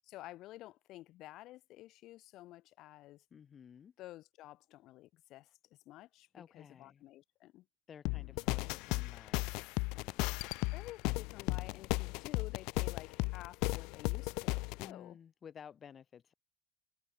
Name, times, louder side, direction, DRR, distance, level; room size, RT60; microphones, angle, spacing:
voice 1, 0.0-3.2 4.0-5.5 5.9-6.3 6.5-7.6 10.7-15.2, left 16 dB, 60° left, 1.0 m, -51 dB
voice 2, 3.3-3.9 6.3-7.1 7.9-10.5 14.7-16.3, left 7 dB, 35° left, 5.4 m, -55 dB
sound 1, 8.1-14.9, left 27 dB, 80° left, 0.5 m, -35 dB
cardioid pair, 140°, 0 cm